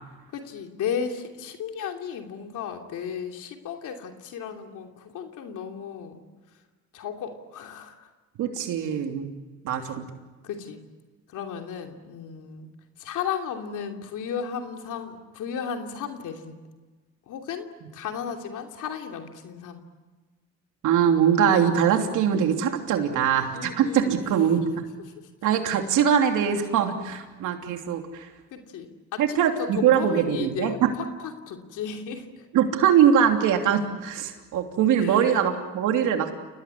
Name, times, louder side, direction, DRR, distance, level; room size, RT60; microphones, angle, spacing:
voice 1, 0.3-6.2 6.9-8.1 9.8-9.9 10.4-10.8 11.3-12.7 13.0-16.6 17.3-19.8 23.5-24.1 28.5-30.8 31.2-32.5 35.0-35.3, left 7 dB, 85° left, 3 dB, 3.0 m, -34 dB
voice 2, 8.4-9.3 9.6-10.1 20.8-24.6 25.4-28.3 29.2-30.9 32.5-36.3, right 8 dB, 90° right, 4 dB, 3.1 m, -22 dB
29.5 x 19.0 x 9.9 m, 1.3 s
cardioid pair, 90°, 30 cm